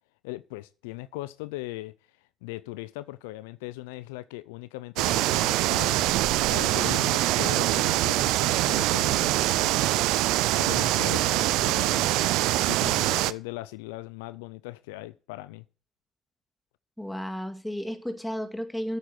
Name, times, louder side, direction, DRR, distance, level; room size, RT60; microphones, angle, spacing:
voice 1, 0.2-1.9 2.4-9.9 10.6-12.3 12.7-15.6, left 19 dB, 85° left, 0.4 m, -39 dB
sound 1, 5.0-13.3, right 17 dB, 70° right, 0.5 m, -24 dB
voice 2, 17.0-19.0, equal, 5° left, 2.3 m, -33 dB
8.6 x 8.3 x 7.7 m
hypercardioid pair, 65°, 0 cm